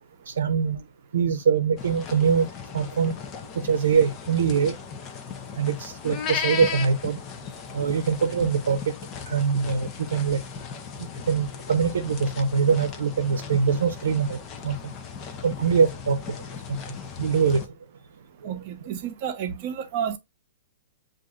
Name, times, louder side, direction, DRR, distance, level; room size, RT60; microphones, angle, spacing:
voice 1, 0.3-0.8 1.1-3.2 3.5-4.7 5.5-7.2 7.7-8.9 9.3-10.4 11.0-14.4 14.6-14.9 15.4-16.2 16.7-17.6 18.4-18.5, right 6 dB, 85° right, 0.7 m, -23 dB
sound 1, 1.8-17.7, left 6 dB, 25° left, 0.6 m, -37 dB
voice 2, 18.4-20.2, right 8 dB, 40° right, 0.8 m, -31 dB
7.4 x 2.6 x 2.4 m
hypercardioid pair, 150°, 0 cm